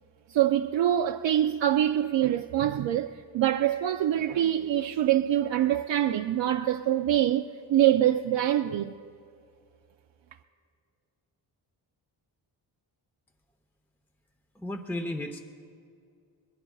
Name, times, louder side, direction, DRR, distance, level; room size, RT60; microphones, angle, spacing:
voice 1, 0.3-8.9, right 11 dB, 70° right, 0.6 m, -25 dB
voice 2, 14.5-15.4, left 1 dB, 5° left, 0.9 m, -33 dB
26.5 x 21.0 x 2.4 m
cardioid pair, 85°, 45 cm